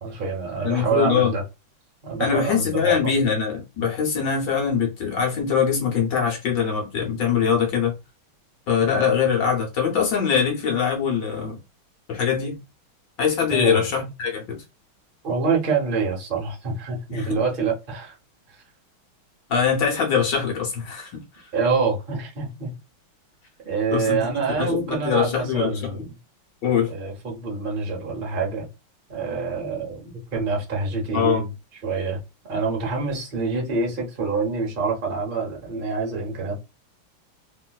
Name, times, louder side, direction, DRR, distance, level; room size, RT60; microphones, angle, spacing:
voice 1, 0.0-1.4 2.0-2.9 8.8-8.9 13.5-13.8 15.2-18.2 21.5-22.7 23.6-26.1 26.9-28.7 29.1-31.5 31.8-32.2 32.5-36.6, right 4 dB, 50° right, 0.6 m, -26 dB
voice 2, 0.6-1.3 2.2-7.9 8.7-11.6 12.1-12.6 13.2-14.6 17.1-17.4 19.5-21.5 23.9-26.0 26.6-26.9 31.1-31.4, left 7 dB, 65° left, 1.3 m, -23 dB
3.0 x 3.0 x 2.3 m
omnidirectional pair, 2.4 m